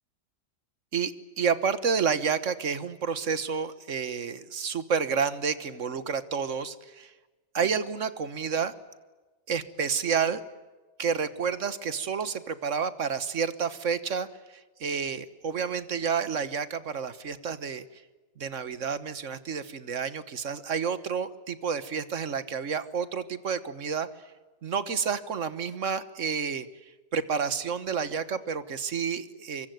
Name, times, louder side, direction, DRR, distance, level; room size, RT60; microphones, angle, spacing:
voice 1, 0.9-7.1 7.5-8.7 9.5-10.4 11.0-17.8 18.4-24.1 24.6-26.7 27.1-29.7, right 6 dB, 50° right, 14 dB, 1.5 m, -30 dB
24.5 x 23.5 x 9.4 m, 1.2 s
omnidirectional pair, 1.8 m